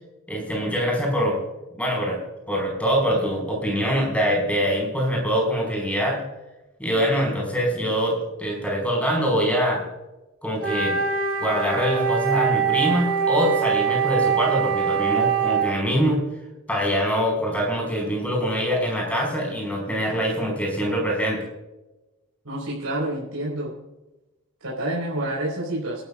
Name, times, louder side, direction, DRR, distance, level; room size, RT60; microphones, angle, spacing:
voice 1, 0.3-1.4 1.7-2.2 2.5-6.2 6.8-9.8 10.4-11.0 11.4-16.2 16.7-21.4, equal, 5° left, -1 dB, 5.1 m, -24 dB
Wind instrument woodwind instrument, 10.6-15.8, right 7 dB, 60° right, 2.8 m, -23 dB
voice 2, 22.4-23.7 24.6-26.0, right 1 dB, 85° right, -5 dB, 4.8 m, -28 dB
25.0 x 12.5 x 2.5 m, 1.0 s
head